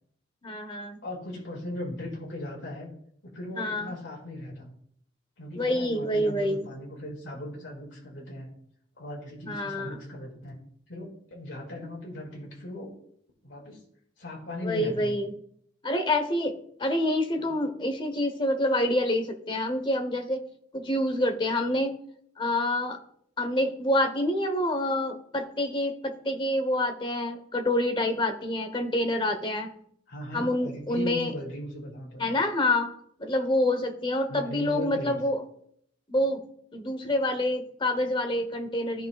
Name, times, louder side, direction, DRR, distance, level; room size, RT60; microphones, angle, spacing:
voice 1, 0.4-1.0 3.6-3.9 5.6-6.7 9.4-10.0 14.6-15.3 15.8-20.5 20.7-21.9 22.4-23.0 23.4-29.7 30.3-31.3 32.2-32.9 33.2-35.4 36.1-36.4 36.7-39.1, left 1 dB, 25° left, 6 dB, 0.9 m, -27 dB
voice 2, 1.0-2.9 3.2-4.7 5.4-8.5 9.0-13.0 13.4-13.8 14.2-15.2 17.4-17.5 30.1-32.4 34.3-35.2, left 1 dB, 75° left, -2 dB, 2.0 m, -38 dB
14.5 x 5.4 x 2.4 m, 0.67 s
head